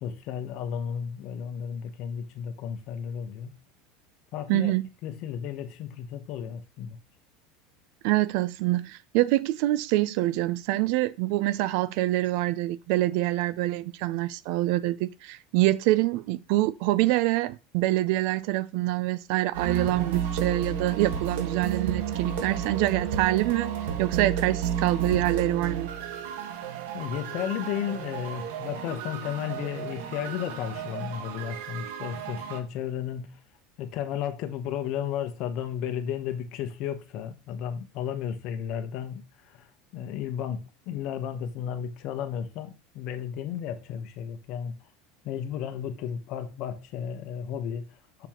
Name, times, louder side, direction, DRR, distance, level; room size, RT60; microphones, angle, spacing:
voice 1, 0.0-3.6 4.3-4.7 5.0-7.0 26.9-33.4 33.8-39.7 39.9-44.7 45.2-48.3, left 9 dB, 55° left, 1.0 m, -33 dB
voice 2, 4.5-4.8 8.0-23.7 24.0-25.9, right 17 dB, 65° right, 0.4 m, -25 dB
sound 1, 19.5-32.6, right 8 dB, 85° right, 1.5 m, -32 dB
6.8 x 6.0 x 3.0 m
supercardioid pair, 135°, 0 cm